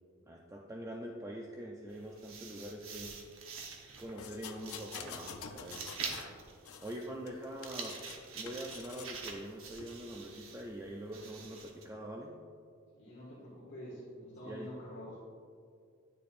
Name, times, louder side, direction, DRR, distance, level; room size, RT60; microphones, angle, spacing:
voice 1, 0.3-3.2 4.0-5.8 6.8-8.0 8.4-12.3 14.4-14.7, right 1 dB, 15° right, -1 dB, 0.4 m, -44 dB
sound 1, 1.9-11.8, right 5 dB, 65° right, 0.9 m, -46 dB
sound 2, 4.2-6.3 6.6-8.2 8.5-9.2 9.8-9.9, left 7 dB, 75° left, 0.5 m, -48 dB
voice 2, 12.9-15.2, equal, 55° left, -8 dB, 1.8 m, -47 dB
9.7 x 6.8 x 2.5 m, 2.3 s
head